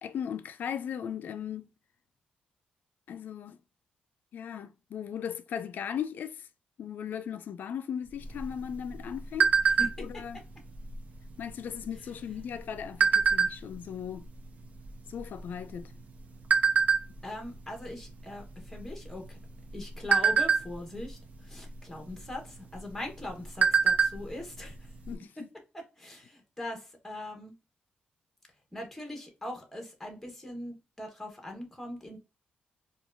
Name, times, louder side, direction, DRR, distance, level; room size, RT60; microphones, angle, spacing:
voice 1, 0.0-1.7 3.1-3.6 4.3-6.5 6.8-9.5 10.0-10.4 11.4-14.3 15.1-15.9 25.1-25.3, left 8 dB, 65° left, 0.4 m, -37 dB
sound 1, 8.2-10.2 10.7-11.0 11.2-11.6 12.3-13.8 14.4-14.5 14.8-16.0 16.5-17.0 17.5-17.8 18.1-18.3 18.7-19.3 19.7-21.1 22.2-22.3 22.7-22.8 23.2-24.3 24.5-24.6 25.0-25.1, right 6 dB, 45° right, 0.6 m, -24 dB
voice 2, 9.6-10.2 17.2-19.4 19.7-24.8 25.4-25.5 25.7-27.5 28.7-32.2, left 1 dB, 5° left, 1.1 m, -41 dB
4.5 x 2.4 x 2.5 m
cardioid pair, 115°, 3 cm